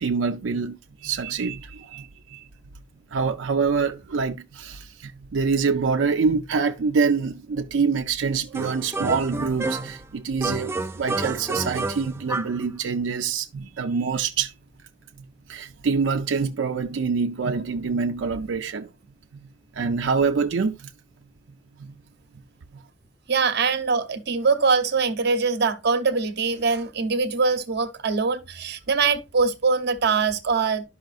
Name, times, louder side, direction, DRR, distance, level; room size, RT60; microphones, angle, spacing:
voice 1, 0.0-2.4 3.1-14.5 15.5-18.9 19.8-20.9 21.8-21.9 22.7-22.8, right 5 dB, 90° right, 0.5 m, -25 dB
sound 1, 8.5-10.0 10.4-12.6, right 2 dB, 15° right, 0.4 m, -29 dB
voice 2, 23.3-30.8, right 4 dB, 60° right, 0.8 m, -23 dB
11.5 x 5.6 x 2.4 m
head